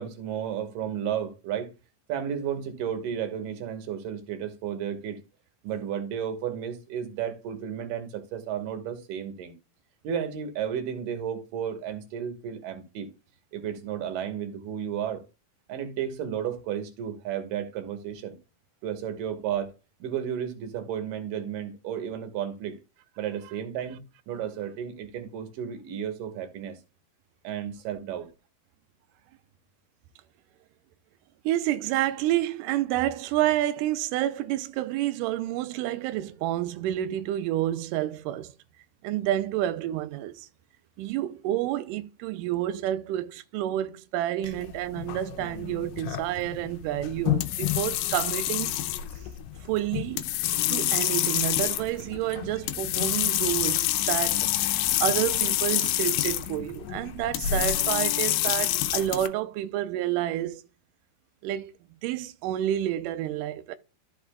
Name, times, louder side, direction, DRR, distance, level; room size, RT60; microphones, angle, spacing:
voice 1, 0.0-1.7 2.1-5.2 5.6-9.5 10.0-13.1 13.5-15.2 15.7-18.4 18.8-19.7 20.0-22.8 23.2-24.0 24.3-26.8 27.4-28.3 44.4-44.5, right 9 dB, 70° right, 2.7 m, -33 dB
voice 2, 31.5-38.5 39.0-40.5 41.0-48.7 49.6-50.2 50.7-54.5 55.0-60.6 61.4-61.7 62.0-63.7, right 13 dB, 90° right, 1.9 m, -29 dB
sound 1, 44.4-59.3, left 13 dB, 80° left, 2.0 m, -27 dB
14.0 x 5.3 x 2.3 m
omnidirectional pair, 4.3 m